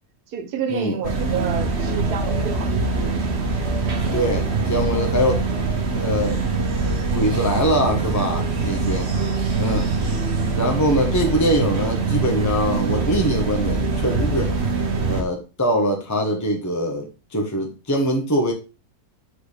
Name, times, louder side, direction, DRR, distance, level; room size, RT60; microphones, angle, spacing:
voice 1, 0.3-3.0, right 7 dB, 80° right, 1.5 m, -30 dB
sound 1, 1.0-15.2, right 3 dB, 45° right, 1.5 m, -23 dB
voice 2, 4.1-5.4 6.0-6.4 7.1-9.1 9.6-9.9 10.6-14.5 15.1-17.1 17.3-18.5, equal, 10° left, 1.1 m, -22 dB
6.3 x 5.0 x 5.1 m
omnidirectional pair, 1.7 m